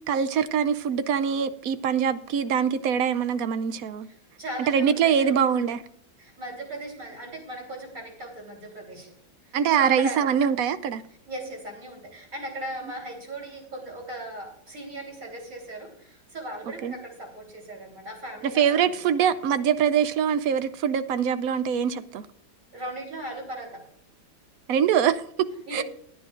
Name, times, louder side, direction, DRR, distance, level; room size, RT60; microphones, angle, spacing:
voice 1, 0.1-4.1 4.6-5.8 9.5-11.0 16.8-16.9 18.6-22.3 24.7-25.8, right 8 dB, 75° right, 0.8 m, -23 dB
voice 2, 4.0-5.4 6.2-9.1 9.5-10.3 11.3-18.9 22.7-23.8 25.7-25.8, right 1 dB, 45° right, 4.3 m, -38 dB
21.0 x 9.6 x 2.5 m
omnidirectional pair, 2.1 m